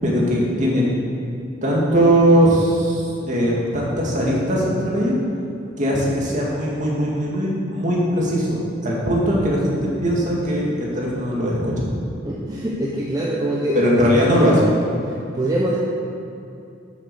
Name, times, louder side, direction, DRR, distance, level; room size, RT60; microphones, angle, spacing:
voice 1, 0.0-0.8 1.6-5.2 5.8-9.7 10.0-11.8 13.7-14.7, equal, 40° right, -4 dB, 2.5 m, -19 dB
voice 2, 12.2-13.9 15.3-15.8, right 1 dB, 20° right, -5 dB, 1.0 m, -23 dB
8.9 x 7.8 x 7.1 m, 2.6 s
head